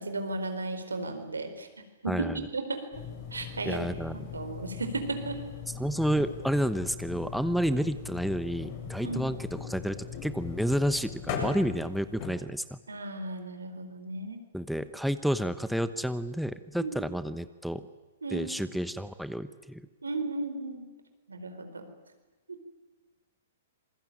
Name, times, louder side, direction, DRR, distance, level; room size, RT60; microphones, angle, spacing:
voice 1, 0.0-2.9 3.3-3.9 4.3-5.4 9.0-9.3 12.9-14.4 16.8-17.0 18.2-18.6 20.0-20.9 21.3-21.9 22.5-22.6, right 2 dB, 90° right, 7 dB, 4.4 m, -35 dB
voice 2, 2.1-2.4 3.6-4.3 5.8-10.0 10.2-12.8 14.5-17.9 18.3-19.9, equal, ahead, 12 dB, 1.0 m, -30 dB
sound 1, 2.9-12.3, left 6 dB, 50° left, 7.5 m, -40 dB
26.5 x 21.5 x 9.1 m, 1.2 s
hypercardioid pair, 120°, 0 cm